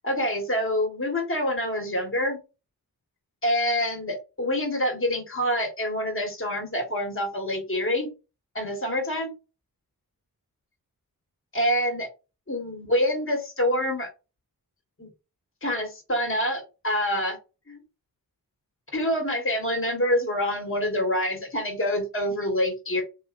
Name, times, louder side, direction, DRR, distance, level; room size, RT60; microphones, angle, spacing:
voice 1, 0.0-2.4 3.4-8.1 8.5-9.3 11.5-12.1 12.5-14.1 15.0-15.1 15.6-17.4 17.7-17.8 18.9-23.0, equal, 35° left, 3 dB, 1.6 m, -26 dB
3.9 x 2.7 x 2.6 m, 0.29 s
wide cardioid pair, 95°, 36 cm